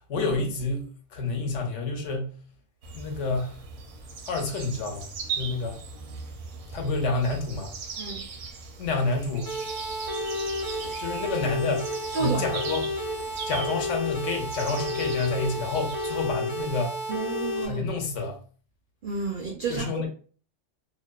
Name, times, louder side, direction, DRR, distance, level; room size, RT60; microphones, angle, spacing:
voice 1, 0.1-0.8 1.1-2.3 2.9-3.6 4.2-5.1 5.4-5.8 6.7-7.7 8.8-9.5 11.0-12.9 13.5-17.0 17.7-18.4 19.7-20.1, left 3 dB, 75° left, 0.9 m, -29 dB
sound 1, 2.8-16.3, right 5 dB, 80° right, 0.9 m, -39 dB
sound 2, 9.5-17.7, left 1 dB, 55° left, 0.3 m, -31 dB
voice 2, 12.1-12.4 17.1-17.8 19.0-19.9, right 5 dB, 60° right, 0.5 m, -30 dB
2.6 x 2.1 x 2.2 m
omnidirectional pair, 1.3 m